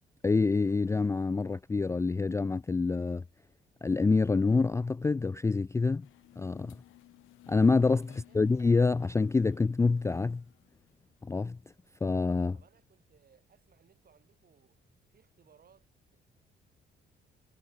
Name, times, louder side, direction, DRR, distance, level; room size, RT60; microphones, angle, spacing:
voice 1, 0.2-3.2 3.8-6.1 6.4-6.8 7.5-8.1 8.3-10.4 11.3-11.6 12.0-12.6, left 4 dB, 15° left, 0.3 m, -26 dB
sound 1, 6.0-11.2, left 16 dB, 90° left, 3.4 m, -59 dB
voice 2, 8.1-8.5 12.5-14.8 15.1-16.2, right 7 dB, 50° right, 6.5 m, -65 dB
cardioid pair, 90°, 20 cm